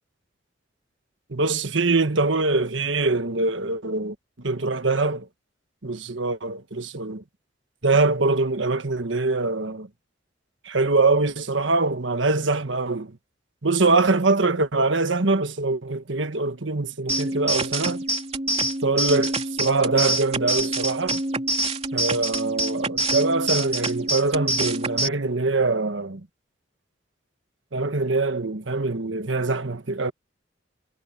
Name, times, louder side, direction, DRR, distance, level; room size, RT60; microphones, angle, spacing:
voice 1, 1.3-4.1 4.4-5.3 5.8-7.2 7.8-9.9 10.6-13.2 13.6-18.0 18.8-21.2 21.9-26.3 27.7-30.1, right 3 dB, 75° right, 1.4 m, -23 dB
sound 1, 17.1-25.1, right 2 dB, 35° right, 3.0 m, -26 dB
head